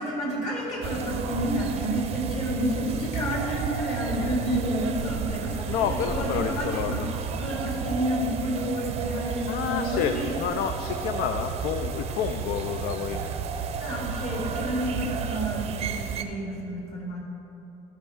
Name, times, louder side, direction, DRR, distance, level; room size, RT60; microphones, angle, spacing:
voice 1, 0.0-10.4 13.8-17.2, equal, 45° left, -2 dB, 2.3 m, -30 dB
sound 1, 0.8-16.2, right 6 dB, 40° right, 0.6 m, -32 dB
voice 2, 5.7-7.1 9.5-13.3, left 8 dB, 60° left, 8 dB, 0.4 m, -29 dB
12.5 x 5.3 x 5.0 m, 3.0 s
cardioid pair, 150°, 16 cm